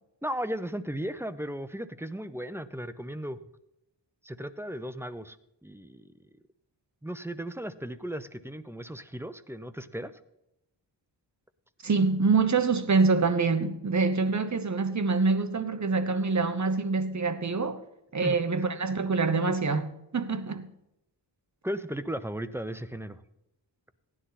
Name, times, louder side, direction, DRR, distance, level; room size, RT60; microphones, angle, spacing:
voice 1, 0.2-3.4 4.2-5.4 5.6-6.1 7.0-10.1 18.2-18.4 21.6-23.2, right 1 dB, 5° right, 0.7 m, -35 dB
voice 2, 11.8-17.8 18.1-20.7, right 4 dB, 40° right, 1.1 m, -25 dB
15.5 x 10.0 x 4.2 m
wide cardioid pair, 85°, 44 cm